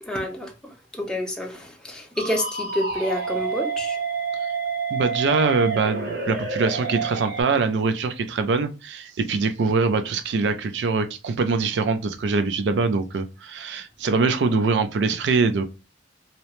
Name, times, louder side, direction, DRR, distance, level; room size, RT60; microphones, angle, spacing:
voice 1, 0.0-4.0, left 1 dB, 5° left, 0.5 m, -29 dB
sound 1, 2.2-7.4, right 5 dB, 60° right, 0.9 m, -28 dB
voice 2, 4.9-15.7, right 4 dB, 75° right, 0.4 m, -23 dB
2.8 x 2.0 x 3.0 m
head